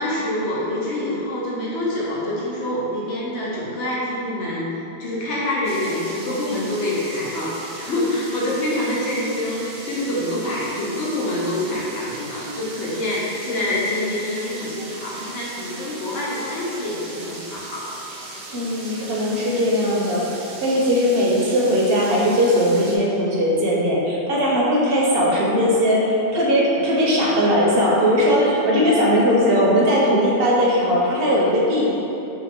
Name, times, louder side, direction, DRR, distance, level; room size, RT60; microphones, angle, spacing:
voice 1, 0.0-17.9, left 1 dB, 85° left, -6 dB, 1.1 m, -26 dB
sound 1, 5.6-23.0, right 2 dB, 90° right, 0.9 m, -38 dB
voice 2, 18.5-20.3 20.6-31.9, equal, 65° right, -4 dB, 0.7 m, -19 dB
2.7 x 2.5 x 4.1 m, 3.0 s
omnidirectional pair, 1.2 m